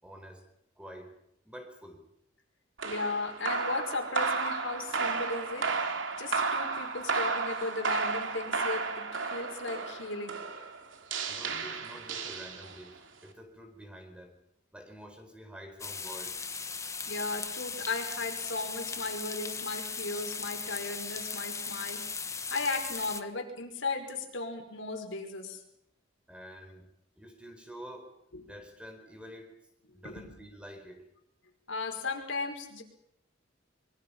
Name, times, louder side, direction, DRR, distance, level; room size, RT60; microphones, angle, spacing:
voice 1, 0.0-0.5 0.8-1.1 1.4-2.0 11.3-14.4 14.7-16.4 26.3-26.9 27.2-28.1 28.4-29.6 29.9-31.1, equal, 5° right, 4 dB, 4.3 m, -48 dB
voice 2, 2.8-5.7 6.1-10.4 17.1-22.2 22.5-25.6 28.3-28.4 30.0-30.5 31.7-32.8, left 3 dB, 75° left, 3 dB, 5.4 m, -36 dB
sound 1, 2.8-13.0, right 4 dB, 75° right, 2.9 m, -33 dB
sound 2, 15.8-23.2, left 5 dB, 15° left, 1.3 m, -38 dB
25.5 x 24.0 x 5.7 m, 0.79 s
head